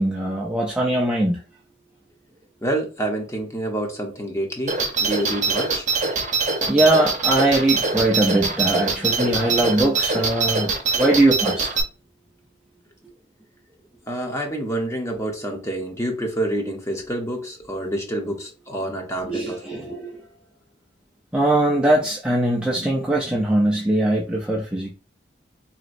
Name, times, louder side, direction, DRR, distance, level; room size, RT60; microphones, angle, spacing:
voice 1, 0.0-1.4 6.7-11.7 19.2-20.2 21.3-24.9, right 1 dB, 5° right, 0.5 m, -21 dB
voice 2, 2.6-5.9 14.1-19.9, right 1 dB, 15° left, 0.8 m, -28 dB
sound 1, 4.7-11.8, right 4 dB, 40° right, 0.8 m, -23 dB
4.0 x 3.0 x 2.5 m
head